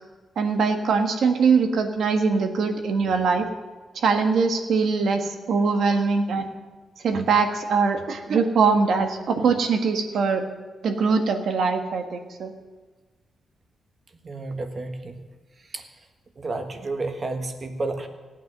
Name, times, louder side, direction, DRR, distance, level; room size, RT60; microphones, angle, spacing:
voice 1, 0.3-3.4 3.9-6.5 7.0-10.4 10.8-12.5, right 5 dB, 70° right, 5 dB, 1.5 m, -22 dB
voice 2, 14.2-15.3 15.6-15.9 16.3-18.1, right 2 dB, 35° right, 6 dB, 1.4 m, -31 dB
17.0 x 9.2 x 6.7 m, 1.3 s
wide cardioid pair, 135°, 0 cm